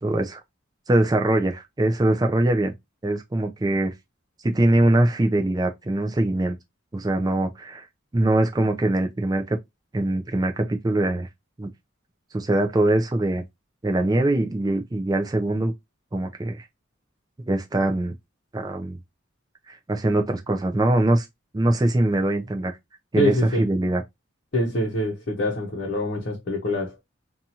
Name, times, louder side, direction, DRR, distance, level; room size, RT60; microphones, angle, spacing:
voice 1, 0.0-0.4 0.9-2.7 3.0-3.9 4.4-6.6 6.9-7.8 8.1-9.6 9.9-11.3 11.6-11.7 12.3-13.4 13.8-15.7 16.1-16.6 17.5-18.1 18.5-19.0 19.7-21.3 21.5-22.7 23.1-24.0, right 1 dB, 20° right, 0.4 m, -22 dB
voice 2, 23.2-23.7 24.5-27.0, equal, 50° left, 0.7 m, -25 dB
2.7 x 2.4 x 2.8 m
head